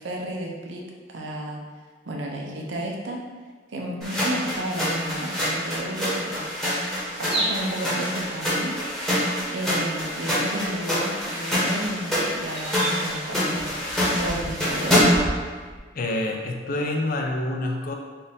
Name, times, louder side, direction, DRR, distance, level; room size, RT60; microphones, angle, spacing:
voice 1, 0.0-1.6 2.0-3.2 3.7-6.5 7.1-9.2 9.5-13.7 14.1-15.1, right 1 dB, 75° right, 0 dB, 0.6 m, -32 dB
sound 1, 4.0-15.4, equal, ahead, 0.9 m, -26 dB
sound 2, 7.3-7.8 9.5-9.6 9.9-10.1 11.0-13.1, right 2 dB, 30° right, 0.6 m, -32 dB
sound 3, 13.5-15.8, equal, 90° left, 1.2 m, -36 dB
voice 2, 15.9-17.9, left 1 dB, 50° left, 1 dB, 0.5 m, -27 dB
4.1 x 2.5 x 3.5 m, 1.5 s
head